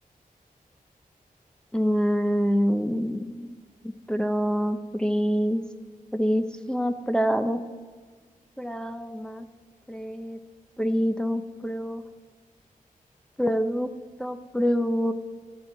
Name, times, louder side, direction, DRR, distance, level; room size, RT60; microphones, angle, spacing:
voice 1, 1.7-3.5 4.1-5.6 6.1-7.6 8.6-9.5 9.9-10.4 10.8-12.0 13.4-13.9 14.2-15.1, equal, 5° left, 7 dB, 0.5 m, -26 dB
14.0 x 11.5 x 4.1 m, 1.5 s
wide cardioid pair, 125°, 15 cm